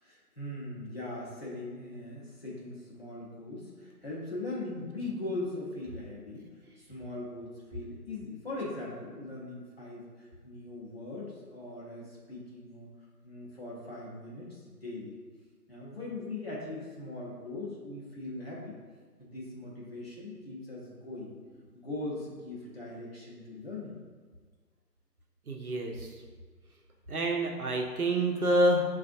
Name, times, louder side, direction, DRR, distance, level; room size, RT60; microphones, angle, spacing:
voice 1, 0.0-6.5 6.8-12.9 13.2-15.1 15.7-18.8 19.2-21.4 21.7-24.0, left 2 dB, 40° left, -6 dB, 0.9 m, -40 dB
voice 2, 25.5-25.9 27.1-28.9, right 1 dB, 65° right, 1 dB, 0.7 m, -27 dB
7.0 x 2.4 x 2.6 m, 1.5 s
figure-of-eight pair, 155°, 49 cm